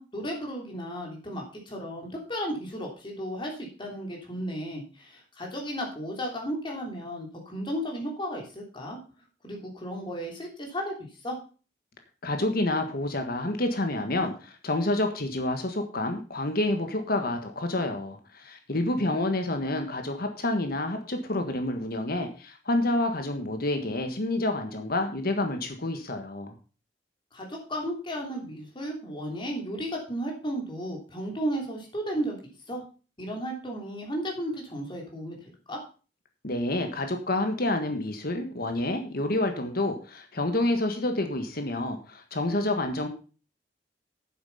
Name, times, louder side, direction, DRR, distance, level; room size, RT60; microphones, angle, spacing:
voice 1, 0.0-9.0 9.4-10.9 11.2-11.3 19.0-19.3 27.3-32.4 32.7-32.8 33.2-35.4 35.7-35.8, equal, 25° left, 0 dB, 3.4 m, -34 dB
voice 2, 12.2-26.5 36.4-43.1, left 2 dB, 55° left, 5 dB, 1.6 m, -28 dB
9.5 x 7.6 x 5.5 m, 0.36 s
head